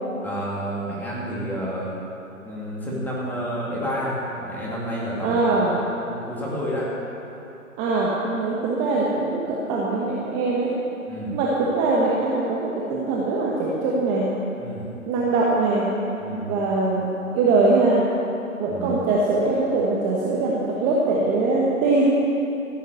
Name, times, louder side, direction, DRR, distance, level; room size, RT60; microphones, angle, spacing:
voice 1, 0.2-2.0 2.4-5.5 6.0-6.9 11.1-11.4 14.6-14.9 16.2-16.5 18.7-19.1, equal, 5° left, -6 dB, 2.4 m, -30 dB
voice 2, 5.2-5.8 7.8-10.7 11.3-14.3 15.1-15.9 16.5-17.1 17.3-18.0 18.6-22.1, right 3 dB, 20° right, -5 dB, 1.2 m, -22 dB
15.0 x 8.4 x 7.8 m, 2.9 s
hypercardioid pair, 140°, 42 cm